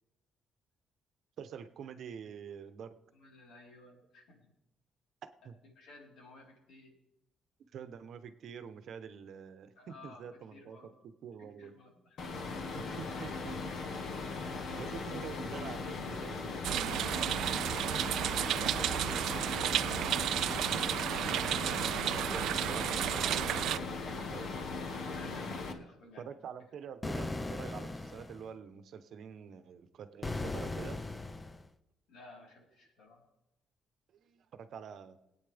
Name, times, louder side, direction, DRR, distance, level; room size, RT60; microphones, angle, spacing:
voice 1, 1.4-2.9 5.2-5.5 7.7-10.8 11.2-11.7 12.7-13.6 13.9-14.2 14.7-17.2 21.4-24.5 26.2-31.0 34.2-35.2, right 7 dB, 55° right, 10 dB, 0.9 m, -46 dB
voice 2, 3.1-4.5 5.6-6.9 9.8-10.2 10.5-10.9 11.4-12.3 14.4-14.8 18.0-19.1 24.9-26.3 32.1-33.2, left 2 dB, 75° left, -2 dB, 4.0 m, -55 dB
sound 1, 12.2-25.7, left 4 dB, 60° left, 1.2 m, -39 dB
sound 2, 16.6-23.8, right 12 dB, 75° right, 0.3 m, -32 dB
sound 3, 27.0-28.4 30.2-31.7, left 2 dB, 15° left, 0.5 m, -38 dB
22.0 x 8.7 x 3.5 m, 0.87 s
cardioid pair, 155°, 0 cm